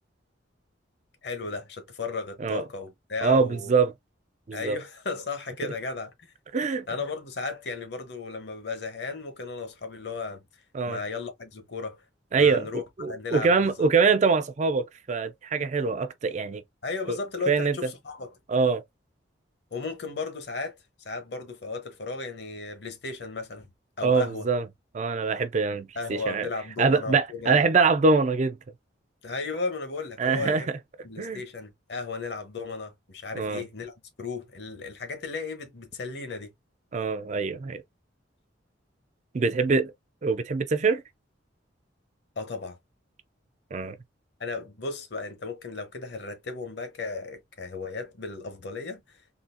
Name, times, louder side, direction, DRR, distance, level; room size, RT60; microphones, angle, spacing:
voice 1, 1.2-3.7 4.5-6.3 6.9-10.4 10.8-12.0 12.4-13.9 16.8-18.3 19.7-23.7 24.0-24.5 26.0-27.6 29.2-30.7 31.0-36.5 42.4-42.8 44.4-49.2, left 4 dB, 60° left, 0.9 m, -35 dB
voice 2, 3.2-3.9 4.5-4.8 6.5-6.9 10.7-11.0 12.3-12.7 13.0-16.6 17.1-17.2 17.5-17.8 18.5-18.8 24.0-24.6 24.9-26.5 26.8-28.6 30.2-30.8 31.2-31.4 33.3-33.6 36.9-37.8 39.3-39.9 40.2-41.0 43.7-44.0, right 4 dB, 40° right, 0.4 m, -24 dB
3.8 x 2.3 x 2.5 m
head